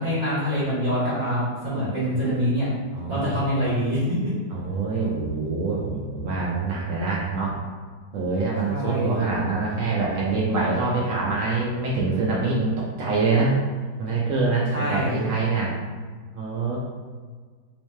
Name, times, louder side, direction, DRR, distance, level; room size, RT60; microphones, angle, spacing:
voice 1, 0.0-2.7 3.1-4.2 8.6-9.2 14.7-15.4, equal, 45° right, -10 dB, 1.1 m, -25 dB
voice 2, 2.9-3.4 4.5-7.6 8.1-13.6 14.0-15.7 16.3-16.8, right 3 dB, 70° right, -4 dB, 0.8 m, -25 dB
3.3 x 3.1 x 3.1 m, 1.5 s
omnidirectional pair, 1.9 m